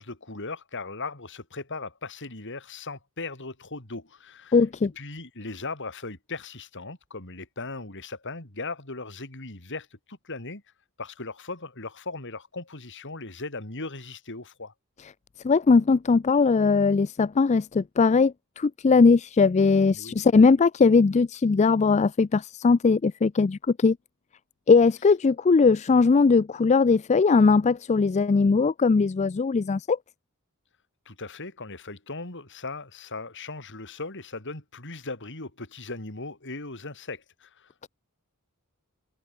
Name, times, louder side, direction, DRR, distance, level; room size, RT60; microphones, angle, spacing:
voice 1, 0.0-4.6 4.9-10.6 11.0-14.7 19.9-20.2 31.1-37.9, left 3 dB, 55° left, 4.5 m, -38 dB
voice 2, 4.5-4.9 15.4-24.0 24.7-30.0, left 4 dB, 30° left, 0.4 m, -20 dB
head